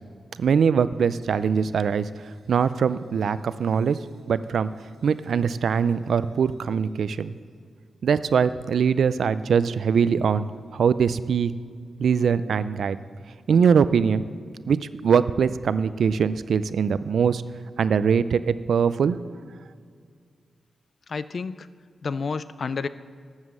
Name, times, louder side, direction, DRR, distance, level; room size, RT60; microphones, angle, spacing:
voice 1, 0.4-4.0 4.3-4.7 5.0-7.4 8.0-10.4 10.7-11.5 12.0-13.0 13.5-14.2 14.7-17.4 17.8-19.2, right 6 dB, 65° right, 14 dB, 0.4 m, -22 dB
voice 2, 21.1-21.7 22.0-22.9, left 5 dB, 40° left, 14 dB, 0.3 m, -30 dB
12.5 x 7.3 x 7.4 m, 2.1 s
wide cardioid pair, 180°, 0 cm